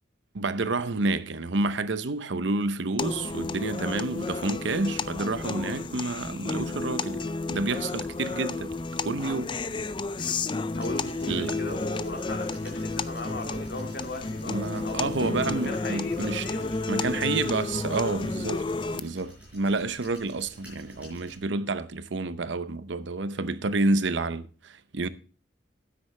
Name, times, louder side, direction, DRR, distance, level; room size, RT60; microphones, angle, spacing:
voice 1, 0.3-8.7 9.0-9.6 11.3-11.6 14.5-16.5 16.9-25.1, right 3 dB, 75° right, 0.7 m, -29 dB
sound 1, 3.0-19.0, left 3 dB, 25° left, 0.4 m, -32 dB
voice 2, 10.7-17.2, left 2 dB, 60° left, 2.2 m, -37 dB
sound 2, 10.7-21.4, equal, 10° right, 6.6 m, -51 dB
12.5 x 9.6 x 3.2 m
head